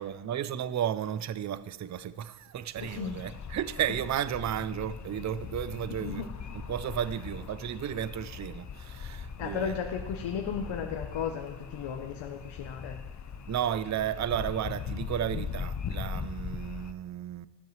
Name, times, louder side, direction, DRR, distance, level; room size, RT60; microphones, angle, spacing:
voice 1, 0.0-6.2 6.7-9.8 13.5-17.5, right 10 dB, 40° right, 0.4 m, -33 dB
voice 2, 2.8-3.2 5.9-6.3 9.4-13.2, left 7 dB, 85° left, 0.8 m, -35 dB
sound 1, 2.8-16.9, left 6 dB, 40° left, 0.7 m, -40 dB
14.5 x 12.0 x 3.1 m
cardioid pair, 95°, 45 cm